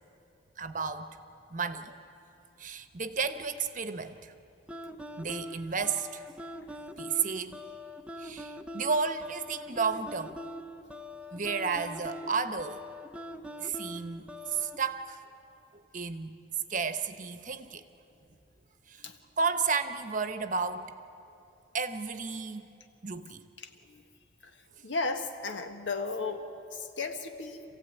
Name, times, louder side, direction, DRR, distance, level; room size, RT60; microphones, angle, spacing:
voice 1, 0.6-1.2 1.5-2.0 2.6-4.3 5.2-6.3 6.9-7.6 8.2-10.4 11.3-12.8 13.6-15.2 15.7-16.4 16.7-17.8 18.9-19.1 19.4-20.9 21.7-22.7 23.0-23.4, right 5 dB, 45° right, 10 dB, 1.0 m, -32 dB
sound 1, 4.7-14.8, equal, 5° right, 0.6 m, -43 dB
voice 2, 24.8-27.6, left 3 dB, 75° left, 6 dB, 1.6 m, -34 dB
26.5 x 16.0 x 9.3 m, 2.8 s
head